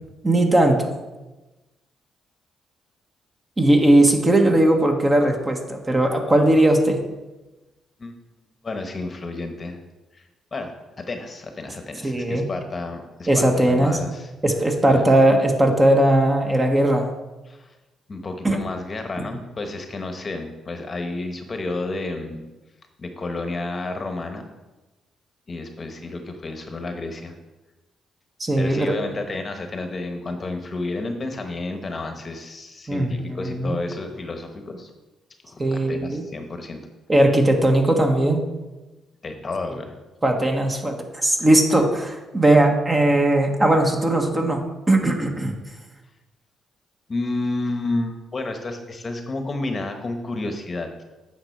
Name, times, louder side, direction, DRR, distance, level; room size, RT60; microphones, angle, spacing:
voice 1, 0.2-0.9 3.6-7.0 12.0-12.5 13.3-14.0 14.4-17.1 18.4-18.6 28.4-28.9 32.9-33.8 35.6-36.2 37.1-38.4 40.2-44.6 44.9-45.5, right 1 dB, 20° right, 3 dB, 1.3 m, -18 dB
voice 2, 8.6-9.8 10.1-10.3 10.5-14.3 14.9-15.0 17.5-17.7 18.1-22.4 23.0-24.4 25.5-27.3 28.6-34.9 35.4-36.8 39.2-40.0 47.1-51.0, left 2 dB, 35° left, 6 dB, 1.0 m, -31 dB
8.8 x 6.0 x 4.5 m, 1.1 s
cardioid pair, 90°, 0 cm